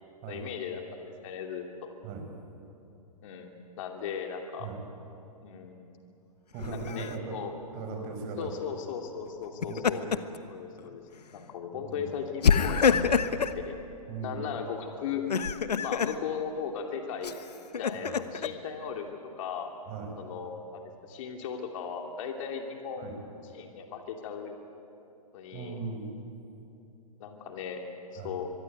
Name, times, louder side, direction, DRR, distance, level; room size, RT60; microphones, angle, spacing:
voice 1, 0.3-1.9 3.2-3.5 3.8-4.7 5.4-6.0 6.7-7.5 8.4-10.0 10.5-11.0 11.3-13.8 14.2-15.2 15.8-17.4 17.7-19.0 19.4-19.7 20.2-23.1 23.5-24.5 25.3-25.8 27.2-27.8 28.1-28.5, left 7 dB, 55° left, 3 dB, 2.7 m, -37 dB
voice 2, 6.5-7.4 7.7-8.6 9.6-10.1 11.8-12.0 14.1-14.4 17.9-18.1 19.9-20.2 23.0-23.1 25.5-26.1 28.2-28.3, right 4 dB, 40° right, 3 dB, 6.3 m, -38 dB
Laughter, 6.6-7.1 9.4-10.4 10.8-11.0 12.4-13.6 15.1-16.2 17.2-18.5, left 6 dB, 80° left, 1.2 m, -26 dB
24.0 x 23.0 x 9.3 m, 2.8 s
hypercardioid pair, 125°, 20 cm